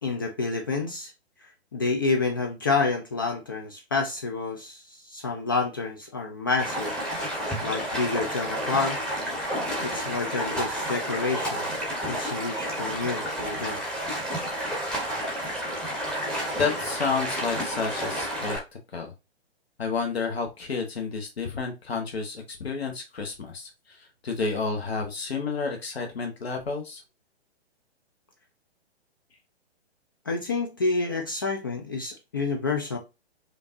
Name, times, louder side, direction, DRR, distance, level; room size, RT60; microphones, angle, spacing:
voice 1, 0.0-1.1 1.7-7.0 7.6-9.0 9.8-11.7 12.1-13.8 30.3-33.0, left 4 dB, 20° left, 0.3 m, -28 dB
Stream, 6.6-18.6, equal, 5° left, 0.8 m, -30 dB
voice 2, 16.5-18.6 18.9-19.1 19.8-27.0, left 4 dB, 65° left, 1.1 m, -30 dB
5.0 x 2.5 x 2.6 m
figure-of-eight pair, 125°, 33 cm